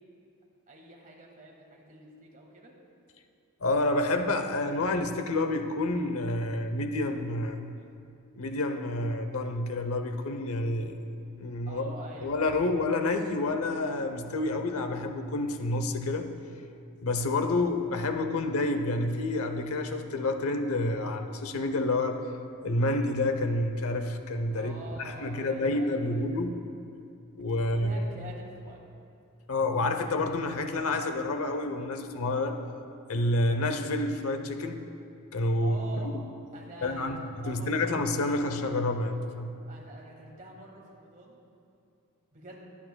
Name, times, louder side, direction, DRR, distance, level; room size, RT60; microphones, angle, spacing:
voice 1, 0.7-2.7 11.7-12.7 24.5-26.4 27.7-28.8 35.6-36.2 36.5-38.0 39.7-41.4 42.3-42.7, right 1 dB, 35° right, -1 dB, 1.7 m, -46 dB
voice 2, 3.6-7.7 8.3-11.0 11.3-11.9 12.2-16.3 17.0-22.2 22.6-24.7 25.0-26.6 27.4-28.0 29.5-32.6 33.1-34.8 35.3-35.8 36.0-36.1 36.8-39.5, left 2 dB, 75° left, 7 dB, 0.8 m, -29 dB
23.0 x 8.6 x 2.3 m, 2.5 s
head